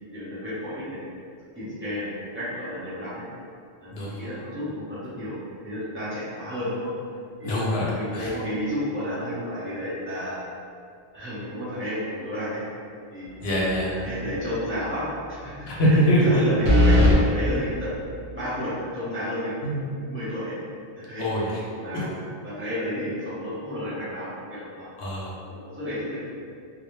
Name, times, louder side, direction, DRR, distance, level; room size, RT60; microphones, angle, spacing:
voice 1, 0.1-1.0 1.5-3.2 3.8-5.4 5.6-6.9 7.4-7.6 7.9-10.4 11.1-12.6 13.1-13.3 14.0-15.5 15.8-17.9 18.3-20.6 21.0-21.3 21.7-22.1 22.4-24.8 25.5-26.2, equal, 15° right, -12 dB, 0.7 m, -32 dB
voice 2, 7.4-8.3 13.4-14.0 15.7-16.4 19.6-19.8 21.2-21.5 25.0-25.3, equal, 65° left, -6 dB, 0.7 m, -23 dB
sound 1, 13.7-14.0 14.4-14.5 16.6-17.2, left 1 dB, 90° right, 1.0 m, -18 dB
2.1 x 2.1 x 3.0 m, 2.3 s
omnidirectional pair, 1.2 m